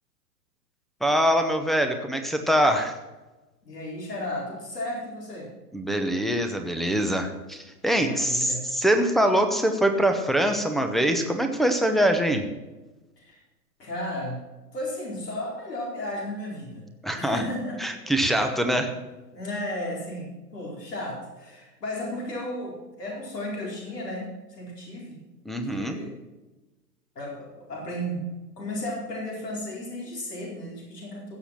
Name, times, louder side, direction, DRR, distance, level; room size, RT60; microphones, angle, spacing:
voice 1, 1.0-3.0 5.7-12.5 17.0-17.4 17.8-18.9 25.5-26.0, equal, ahead, 6 dB, 0.8 m, -24 dB
voice 2, 3.6-5.5 7.9-8.7 13.2-13.4 13.8-14.4 14.7-16.8 17.2-17.8 18.7-18.8 19.3-25.2 25.7-26.2 27.1-28.3 28.6-31.4, left 1 dB, 75° left, -2 dB, 4.7 m, -34 dB
16.0 x 7.1 x 5.9 m, 1.1 s
figure-of-eight pair, 115°, 48 cm